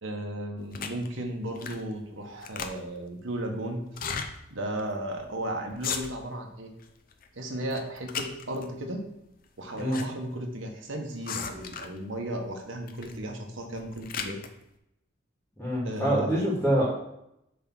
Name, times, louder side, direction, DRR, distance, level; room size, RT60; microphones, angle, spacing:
voice 1, 0.0-3.9 4.5-6.7 7.3-9.0 9.6-14.4 15.8-16.5, right 1 dB, 70° right, 2 dB, 1.2 m, -35 dB
sound 1, 0.7-1.1 1.6-1.9 2.2-3.0 3.9-4.3 4.8-4.9 5.1-5.4 5.7-6.4 6.8-7.3 7.7-8.7 9.5-10.1 10.3-10.4 11.2-12.0 12.9-13.2 13.6-14.5, left 6 dB, 45° left, 0.6 m, -36 dB
voice 2, 15.6-16.8, right 1 dB, 5° left, -6 dB, 2.0 m, -25 dB
8.0 x 3.5 x 6.0 m, 0.82 s
head